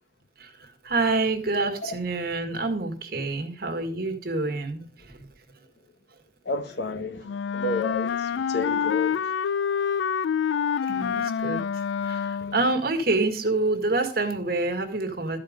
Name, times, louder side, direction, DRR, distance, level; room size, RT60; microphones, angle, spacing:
voice 1, 0.4-5.3 10.8-15.4, right 2 dB, 55° right, 1.7 m, -27 dB
voice 2, 6.5-7.2 7.5-9.2 12.4-12.5, left 3 dB, 70° left, 1.0 m, -30 dB
Wind instrument woodwind instrument, 7.3-12.7, left 7 dB, 85° left, 0.3 m, -27 dB
13.0 x 5.1 x 5.1 m
head